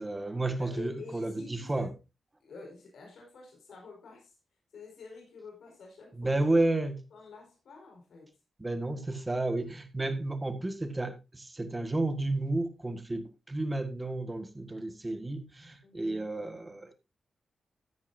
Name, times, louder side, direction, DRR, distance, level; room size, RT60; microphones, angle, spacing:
voice 1, 0.0-1.9 6.1-7.0 8.6-16.9, right 2 dB, 15° right, 1.7 m, -32 dB
voice 2, 0.6-1.9 2.4-4.4 4.7-6.6 7.1-8.4 15.8-16.3, left 4 dB, 85° left, 4.8 m, -48 dB
14.0 x 9.8 x 2.7 m
wide cardioid pair, 130°, 0 cm